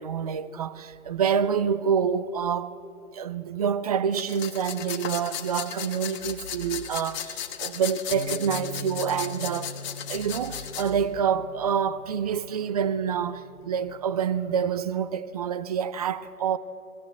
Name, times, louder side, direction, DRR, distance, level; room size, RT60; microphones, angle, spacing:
voice 1, 0.0-2.8 3.1-9.7 10.1-16.6, right 7 dB, 30° right, 0.4 m, -27 dB
sound 1, 4.1-10.9, left 10 dB, 30° left, 1.3 m, -36 dB
sound 2, 8.1-14.4, equal, 10° right, 1.5 m, -42 dB
21.5 x 15.5 x 8.0 m
hypercardioid pair, 145°, 42 cm